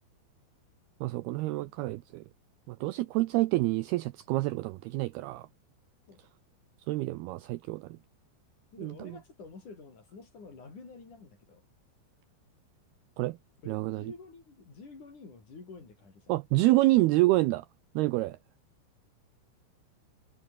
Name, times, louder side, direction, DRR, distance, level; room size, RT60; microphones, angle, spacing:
voice 1, 1.0-2.2 2.7-5.5 6.9-8.0 8.8-9.2 13.2-13.4 13.7-14.1 16.3-17.7 18.0-18.4, right 19 dB, 85° right, 2.2 m, -28 dB
voice 2, 8.7-11.6 13.6-16.3 18.3-18.4, left 4 dB, 40° left, 6.8 m, -49 dB
omnidirectional pair, 5.4 m